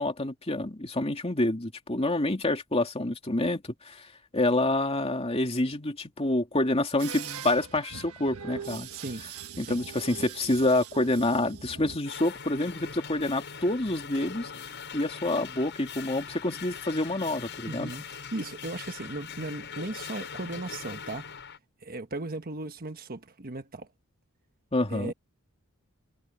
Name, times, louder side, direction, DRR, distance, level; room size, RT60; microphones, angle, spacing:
voice 1, 0.0-4.1 4.3-8.9 9.6-14.5 14.9-18.0 24.7-25.1, left 2 dB, 25° left, 2.7 m, -27 dB
sound 1, 7.0-12.0, right 7 dB, 85° right, 1.4 m, -41 dB
voice 2, 8.9-9.2 9.7-9.8 17.7-21.2 21.8-23.9 24.9-25.1, right 2 dB, 40° right, 1.3 m, -37 dB
sound 2, 12.1-21.6, left 6 dB, 55° left, 7.0 m, -41 dB
head